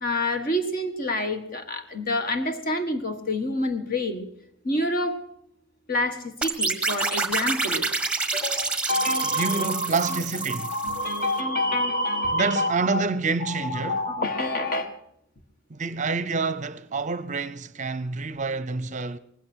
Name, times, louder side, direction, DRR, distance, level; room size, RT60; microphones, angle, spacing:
voice 1, 0.0-4.2 4.6-5.2 5.9-7.9 8.3-10.2 10.5-13.0 13.4-14.9, left 1 dB, 45° left, 1.7 m, -27 dB
sound 1, 6.4-11.2, right 3 dB, 5° right, 1.3 m, -28 dB
voice 2, 9.2-10.7 12.3-14.0 15.7-19.2, right 4 dB, 40° right, 0.6 m, -27 dB
19.5 x 16.0 x 4.5 m
head